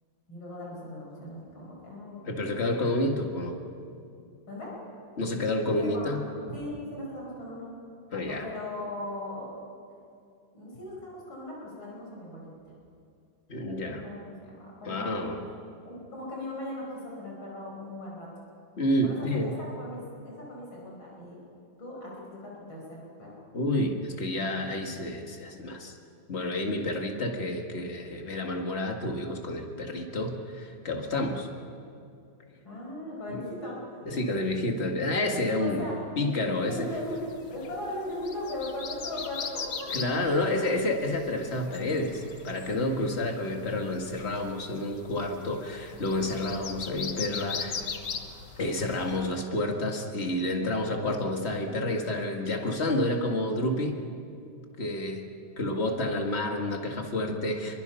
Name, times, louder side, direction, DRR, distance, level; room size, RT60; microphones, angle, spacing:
voice 1, 0.3-2.4 4.5-4.7 5.7-6.2 6.5-7.7 8.2-9.5 10.5-12.5 13.8-15.3 15.8-18.3 19.0-21.4 21.8-23.3 32.6-33.8 35.6-35.9 36.6-37.2 37.5-40.5, left 1 dB, 85° left, -3 dB, 6.0 m, -38 dB
voice 2, 2.3-3.6 5.2-6.2 8.1-8.5 13.5-14.0 14.8-15.4 18.8-19.5 23.5-26.0 26.3-31.5 33.3-33.4 34.1-35.8 36.2-36.9 39.9-47.8 48.6-54.0 54.8-55.2 55.6-57.8, left 1 dB, 35° left, 2 dB, 2.1 m, -29 dB
sound 1, 36.8-49.3, left 5 dB, 60° left, 1.8 m, -40 dB
27.0 x 23.0 x 5.7 m, 2.5 s
omnidirectional pair, 2.2 m